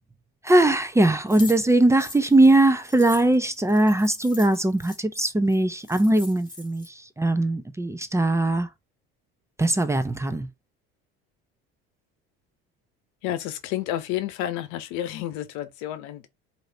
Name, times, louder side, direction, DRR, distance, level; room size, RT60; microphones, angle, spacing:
voice 1, 0.4-8.7 9.6-10.5, right 1 dB, 10° right, 0.7 m, -20 dB
sound 1, 1.3-5.0 5.5-5.6 5.8-6.9, left 2 dB, 15° left, 2.0 m, -42 dB
voice 2, 13.2-16.3, left 13 dB, 70° left, 0.9 m, -30 dB
4.8 x 2.8 x 2.8 m
supercardioid pair, 85°, 31 cm